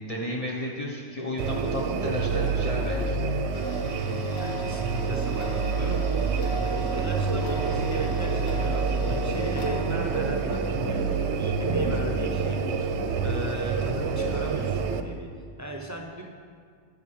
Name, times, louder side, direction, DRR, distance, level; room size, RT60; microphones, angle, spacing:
voice 1, 0.0-3.2, left 1 dB, 35° left, -3 dB, 0.8 m, -33 dB
sound 1, 1.4-15.0, right 4 dB, 70° right, 0.8 m, -27 dB
Tick-tock, 3.5-10.7, right 1 dB, 55° left, 1.3 m, -39 dB
voice 2, 4.3-13.0 13.2-15.3 15.6-16.2, right 2 dB, 25° right, 0 dB, 0.4 m, -38 dB
11.0 x 7.3 x 3.2 m, 2.1 s
omnidirectional pair, 1.2 m